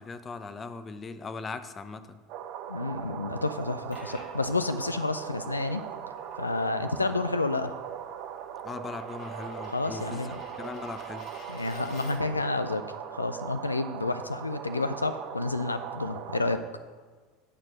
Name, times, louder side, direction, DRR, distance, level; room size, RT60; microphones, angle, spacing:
voice 1, 0.0-2.2 8.6-11.3, left 4 dB, 25° left, 11 dB, 0.6 m, -39 dB
sound 1, 2.3-16.6, right 9 dB, 55° right, 0.6 m, -40 dB
voice 2, 2.7-5.8 6.4-7.7 9.7-10.4 11.5-12.8 13.1-16.6, left 3 dB, 90° left, 10 dB, 0.4 m, -30 dB
Coin (dropping), 3.5-12.4, left 2 dB, 45° left, 2.2 m, -52 dB
9.6 x 4.4 x 6.9 m, 1.4 s
figure-of-eight pair, 75°, 0 cm